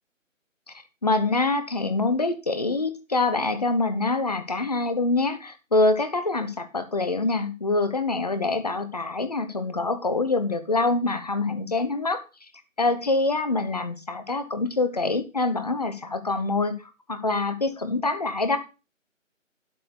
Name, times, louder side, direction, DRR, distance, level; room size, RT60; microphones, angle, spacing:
voice 1, 1.0-12.2 12.8-18.6, left 3 dB, 30° left, 1.0 m, -25 dB
12.0 x 4.3 x 6.9 m
figure-of-eight pair, 155°, 39 cm